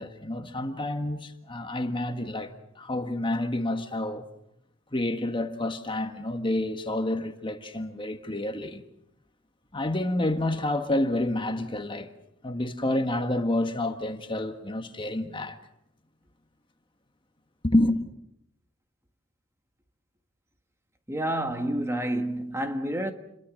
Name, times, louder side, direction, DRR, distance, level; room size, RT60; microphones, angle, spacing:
voice 1, 0.0-2.5 2.8-4.3 4.9-8.8 9.7-12.1 12.4-15.6 17.6-18.0, left 1 dB, 25° left, 1.5 m, -28 dB
voice 2, 21.1-23.1, right 1 dB, 15° right, 1.6 m, -29 dB
29.5 x 22.5 x 6.4 m
head